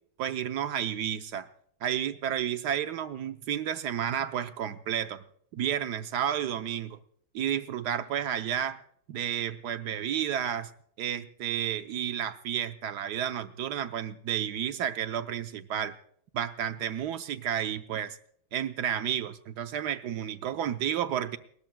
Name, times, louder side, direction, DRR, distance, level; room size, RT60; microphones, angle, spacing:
voice 1, 0.2-1.5 1.8-5.2 5.5-7.0 7.3-8.8 9.1-10.7 11.0-16.0 16.3-18.2 18.5-21.4, right 9 dB, 70° right, 10 dB, 1.0 m, -31 dB
29.5 x 13.5 x 2.2 m, 0.64 s
omnidirectional pair, 2.3 m